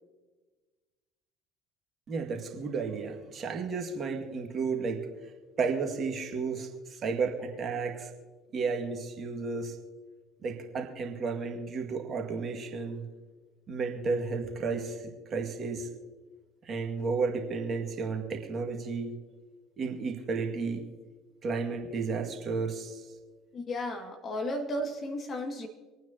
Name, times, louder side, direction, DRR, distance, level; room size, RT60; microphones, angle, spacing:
voice 1, 2.1-5.0 5.6-8.1 8.5-9.8 10.4-13.0 13.7-15.9 16.6-19.1 19.8-20.8 21.4-23.1, right 4 dB, 40° right, 2 dB, 2.1 m, -32 dB
voice 2, 23.5-25.7, left 1 dB, 40° left, 3 dB, 2.1 m, -34 dB
26.5 x 9.2 x 2.9 m, 1.3 s
figure-of-eight pair, 60°, 0 cm